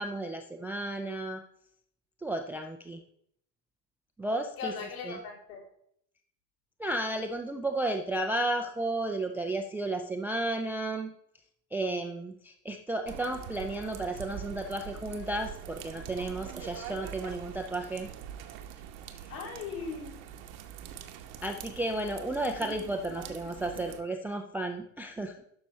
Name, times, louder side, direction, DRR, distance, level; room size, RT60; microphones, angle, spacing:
voice 1, 0.0-1.4 2.2-3.0 4.2-4.7 5.0-5.2 6.8-11.1 11.7-18.1 21.4-25.4, right 2 dB, 5° right, 5 dB, 0.3 m, -33 dB
voice 2, 4.6-5.7 19.3-20.2, left 5 dB, 60° left, -3 dB, 3.6 m, -38 dB
sound 1, 13.1-24.0, right 9 dB, 55° right, 1.0 m, -44 dB
12.0 x 6.1 x 3.2 m, 0.69 s
figure-of-eight pair, 70°, 49 cm